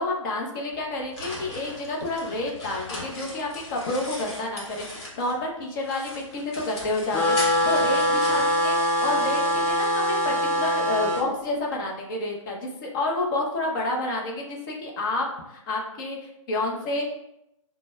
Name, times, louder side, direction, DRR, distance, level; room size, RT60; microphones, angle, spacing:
voice 1, 0.0-17.1, left 2 dB, 35° left, 0 dB, 0.8 m, -29 dB
sound 1, 0.7-5.5 5.8-9.3, left 1 dB, 50° left, 1.3 m, -38 dB
sound 2, 7.1-11.2, equal, 10° left, 0.4 m, -23 dB
6.0 x 2.2 x 2.2 m, 0.85 s
figure-of-eight pair, 125°, 17 cm